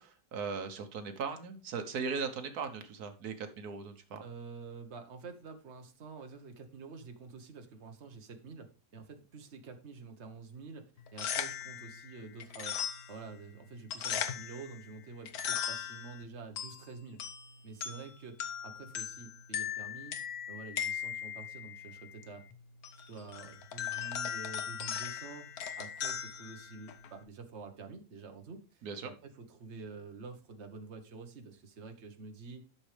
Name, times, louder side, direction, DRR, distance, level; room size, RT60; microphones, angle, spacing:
voice 1, 0.0-4.2 28.8-29.1, right 5 dB, 85° right, 7 dB, 1.6 m, -38 dB
voice 2, 4.2-12.8 13.1-17.2 17.6-20.2 20.5-22.5 23.1-32.6, right 4 dB, 50° right, 5 dB, 1.5 m, -48 dB
sound 1, 11.0-27.2, left 8 dB, 75° left, 1.4 m, -39 dB
12.0 x 6.5 x 3.3 m, 0.32 s
omnidirectional pair, 1.6 m